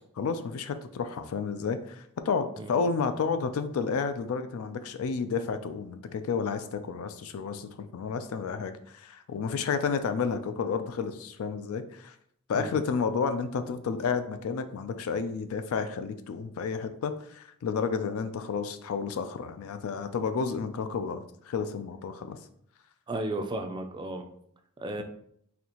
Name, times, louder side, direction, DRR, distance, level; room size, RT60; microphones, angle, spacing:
voice 1, 0.2-12.1 12.5-22.4, left 5 dB, 70° left, 9 dB, 0.4 m, -31 dB
voice 2, 23.1-24.2 24.8-25.0, right 2 dB, 20° right, 6 dB, 0.3 m, -34 dB
4.2 x 2.7 x 2.8 m, 0.68 s
head